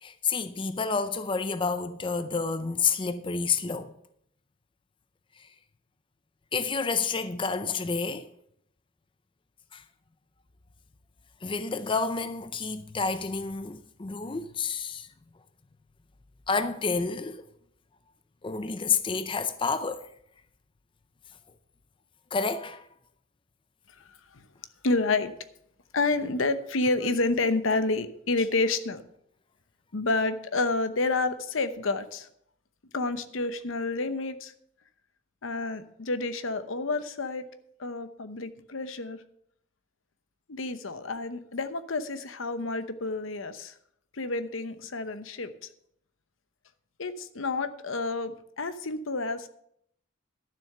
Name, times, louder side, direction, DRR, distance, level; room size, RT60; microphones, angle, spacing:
voice 1, 0.0-3.9 5.4-5.5 6.5-8.3 9.7-9.8 11.4-15.1 16.5-17.4 18.4-20.1 22.3-22.9, left 5 dB, 25° left, 0.5 m, -29 dB
voice 2, 24.8-25.3 25.9-29.0 29.9-32.3 32.9-34.5 35.4-37.4 37.8-39.2 40.5-43.7 44.1-45.7 47.0-49.5, left 3 dB, 70° left, 0.9 m, -29 dB
12.0 x 7.0 x 6.7 m
head